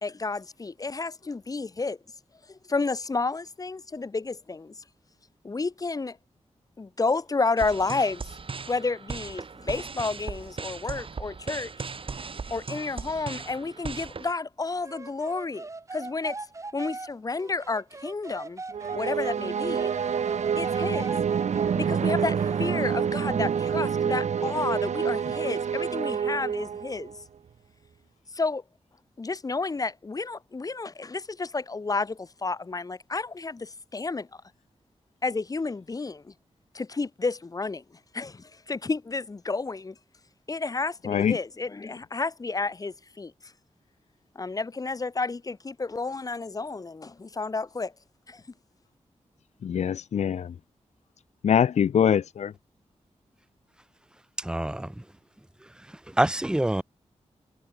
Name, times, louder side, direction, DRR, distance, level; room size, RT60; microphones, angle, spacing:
voice 1, 0.0-2.0 2.5-4.8 5.4-6.2 6.8-8.3 8.7-11.9 12.5-16.5 16.7-18.6 18.9-19.9 20.6-21.1 21.8-27.2 28.3-28.6 29.2-34.3 35.2-36.3 36.7-39.9 40.5-43.5 44.3-47.9 48.3-48.4, left 3 dB, 30° left, 1.2 m, -31 dB
sound 1, 7.6-14.3, right 5 dB, 50° right, 6.4 m, -38 dB
sound 2, 14.8-19.4 19.8-22.9, right 3 dB, 25° right, 1.4 m, -40 dB
sound 3, 18.7-27.2, right 7 dB, 80° right, 1.1 m, -27 dB
voice 2, 49.6-50.5 51.4-52.5, left 8 dB, 75° left, 0.5 m, -23 dB
voice 3, 54.4-55.0 56.1-56.8, right 1 dB, 5° right, 1.1 m, -26 dB
wide cardioid pair, 140°, 12 cm